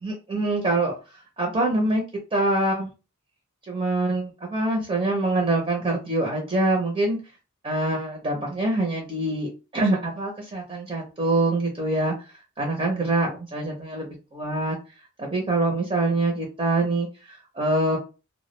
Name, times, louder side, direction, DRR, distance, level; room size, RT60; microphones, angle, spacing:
voice 1, 0.0-0.9 1.4-2.0 2.3-2.9 3.7-7.2 7.6-14.8 15.2-18.0, right 2 dB, 25° right, 0 dB, 0.5 m, -25 dB
2.1 x 2.0 x 3.0 m, 0.30 s
head